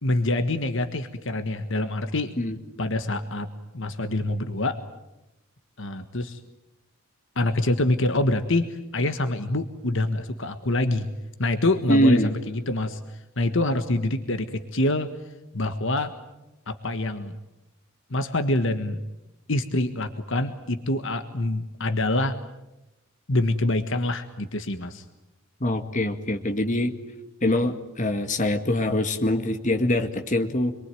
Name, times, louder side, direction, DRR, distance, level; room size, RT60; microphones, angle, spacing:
voice 1, 0.0-2.4 2.8-3.5 3.7-4.8 5.8-6.4 7.3-11.1 11.4-13.0 13.4-15.1 15.5-16.1 16.7-17.3 18.1-19.0 19.5-22.4 23.3-25.0, left 2 dB, 60° left, 8 dB, 1.5 m, -25 dB
voice 2, 11.9-12.3 25.6-26.9 27.4-30.7, left 1 dB, 35° left, 6 dB, 2.0 m, -23 dB
27.0 x 23.0 x 9.3 m, 0.95 s
head